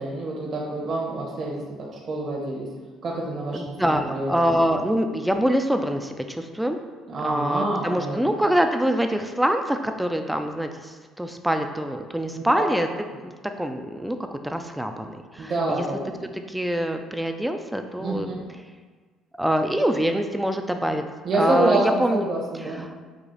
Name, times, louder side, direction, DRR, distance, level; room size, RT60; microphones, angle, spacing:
voice 1, 0.0-2.7 3.0-4.3 7.1-8.4 12.3-12.7 15.4-16.2 18.0-18.4 21.2-22.8, right 2 dB, 45° right, -4 dB, 0.9 m, -27 dB
voice 2, 3.5-6.8 7.2-15.8 16.2-18.3 19.4-21.0 21.3-22.3 22.6-22.9, equal, 5° right, 6 dB, 0.3 m, -25 dB
4.8 x 2.4 x 3.9 m, 1.4 s
cardioid pair, 100°, 0 cm